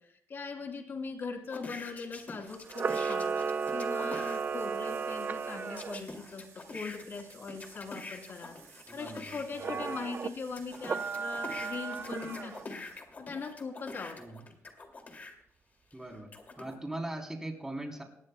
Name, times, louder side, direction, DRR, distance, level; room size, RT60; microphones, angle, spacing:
voice 1, 0.0-6.4 6.7-14.2, left 4 dB, 50° left, 3 dB, 3.1 m, -41 dB
sound 1, 1.5-4.4 5.8-9.4 10.0-15.3 15.9-16.8, left 3 dB, 35° left, 2.4 m, -45 dB
sound 2, 2.5-13.0, right 8 dB, 90° right, 2.7 m, -58 dB
Camera, 2.7-6.0 9.6-10.3 10.8-12.6, right 5 dB, 40° right, 0.7 m, -34 dB
voice 2, 8.9-9.8 14.2-14.5 15.9-16.3 16.6-18.0, right 1 dB, 10° right, 2 dB, 3.3 m, -40 dB
23.0 x 19.5 x 2.2 m, 0.71 s
cardioid pair, 110°, 5 cm